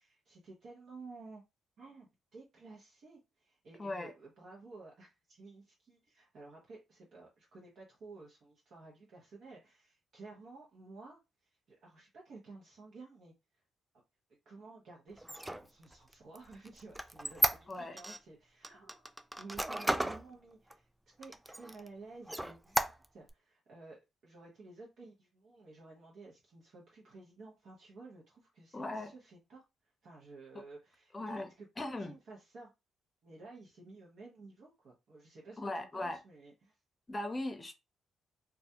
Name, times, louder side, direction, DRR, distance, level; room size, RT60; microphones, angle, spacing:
voice 1, 0.0-1.4 1.8-11.2 11.7-13.3 14.5-19.0 19.4-20.9 21.2-22.8 23.1-29.6 30.0-31.7 32.0-32.7 33.2-36.8, right 3 dB, 65° right, 0.8 m, -53 dB
voice 2, 3.8-4.1 17.7-18.0 28.7-29.1 31.1-31.5 31.8-32.1 35.6-36.2 37.1-37.7, left 2 dB, 30° left, 0.6 m, -38 dB
Squeak, 15.2-18.2 18.6-20.2 20.7-20.8 21.2-21.9 22.3-23.3, right 1 dB, 10° right, 0.3 m, -34 dB
2.3 x 2.1 x 2.7 m
supercardioid pair, 55°, 0 cm